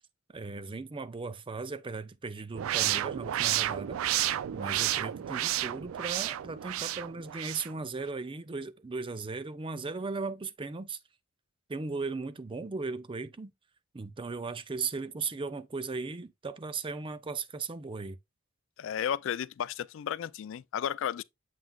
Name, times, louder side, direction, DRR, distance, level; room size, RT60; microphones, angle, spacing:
voice 1, 0.3-11.0 11.7-13.5 13.9-18.2, right 4 dB, 25° right, 0.5 m, -37 dB
sound 1, 2.6-7.7, right 13 dB, 90° right, 0.3 m, -31 dB
voice 2, 18.8-21.2, left 9 dB, 70° left, 0.3 m, -33 dB
7.5 x 5.7 x 2.3 m
head